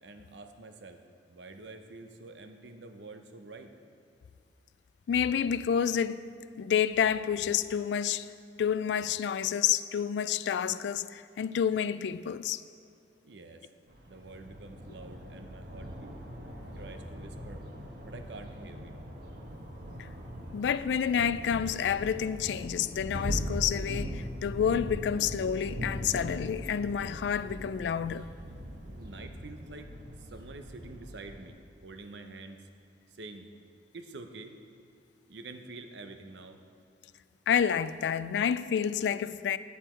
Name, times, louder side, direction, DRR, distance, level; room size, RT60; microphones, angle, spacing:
voice 1, 0.0-1.0 1.3-3.7 13.2-13.7 14.0-16.1 16.8-17.7 18.0-18.9 28.9-29.9 30.2-32.7 33.1-33.5 33.9-34.5 35.3-36.6, right 3 dB, 80° right, 0.7 m, -47 dB
voice 2, 5.1-6.3 6.6-8.3 8.6-12.6 20.5-28.3 37.5-39.6, left 8 dB, 75° left, 0.3 m, -29 dB
sound 1, 13.9-31.5, equal, 60° right, 1.1 m, -40 dB
9.5 x 8.3 x 4.4 m
head